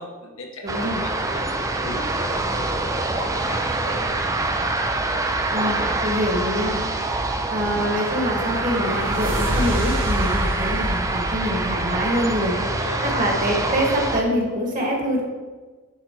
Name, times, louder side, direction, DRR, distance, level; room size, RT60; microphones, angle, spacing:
voice 1, 0.0-1.5 1.8-4.9 12.6-13.2, left 2 dB, 75° left, 1 dB, 1.3 m, -37 dB
voice 2, 0.6-1.0 5.5-6.8 7.5-12.5 13.0-15.2, equal, 40° right, 0 dB, 1.6 m, -25 dB
sound 1, 0.7-14.2, right 2 dB, 15° right, 0.4 m, -25 dB
sound 2, 7.5-12.4, equal, 60° right, 1.8 m, -29 dB
9.8 x 4.1 x 4.5 m, 1.4 s
head